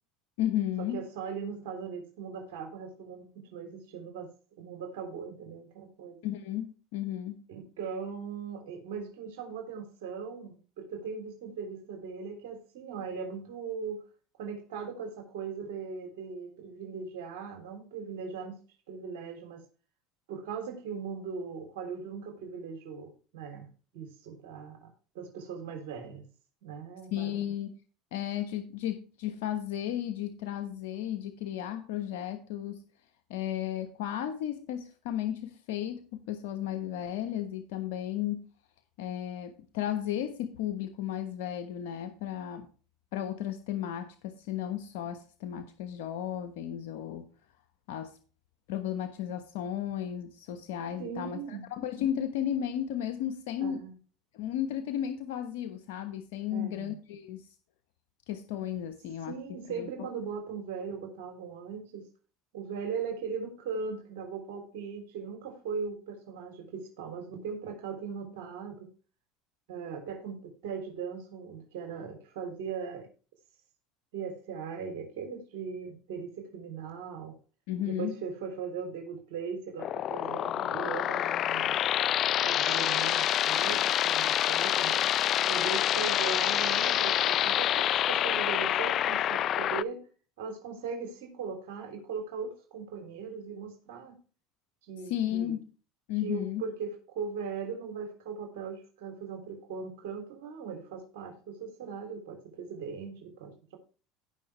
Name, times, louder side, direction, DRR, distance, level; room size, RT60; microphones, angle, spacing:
voice 1, 0.4-1.0 6.2-7.4 27.1-27.7 28.1-32.8 33.3-38.5 39.0-42.7 43.1-47.3 47.9-48.2 48.7-53.8 54.3-57.5 58.3-59.3 59.8-59.9 77.7-78.2 95.0-95.7 96.1-96.6, left 11 dB, 75° left, 7 dB, 1.2 m, -34 dB
voice 2, 0.9-4.3 4.6-6.2 7.5-14.0 14.4-18.6 18.9-19.6 20.3-23.7 23.9-26.2 26.6-27.3 51.0-51.7 53.6-53.9 56.5-57.0 59.3-62.0 62.5-68.9 69.7-73.1 74.1-77.4 77.8-81.8 82.4-85.1 85.5-90.0 90.4-94.2 94.9-95.5 96.2-103.8, right 6 dB, 80° right, 4 dB, 3.5 m, -39 dB
sound 1, 79.8-89.8, left 11 dB, 45° left, 0.4 m, -27 dB
17.0 x 5.9 x 3.3 m, 0.36 s
supercardioid pair, 95°, 0 cm